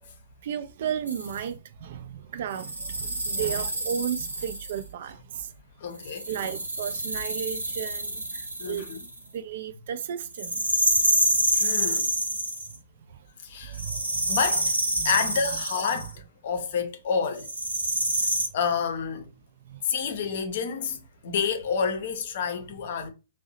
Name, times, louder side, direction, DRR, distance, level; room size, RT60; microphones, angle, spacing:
voice 1, 0.4-5.5 6.3-8.9 9.3-10.6 13.6-14.4 15.0-15.1 19.7-19.8, right 9 dB, 50° right, 0.4 m, -34 dB
sound 1, 1.1-1.4 2.5-4.8 6.0-9.2 10.3-12.8 13.7-16.1 17.4-18.5, right 1 dB, 80° right, 0.9 m, -27 dB
voice 2, 5.8-6.3 8.6-9.1 11.5-12.1 13.4-13.8 14.3-14.8 15.0-17.5 18.5-19.3 19.8-23.1, left 6 dB, 50° left, 0.7 m, -29 dB
2.7 x 2.1 x 3.9 m
figure-of-eight pair, 115°, 0 cm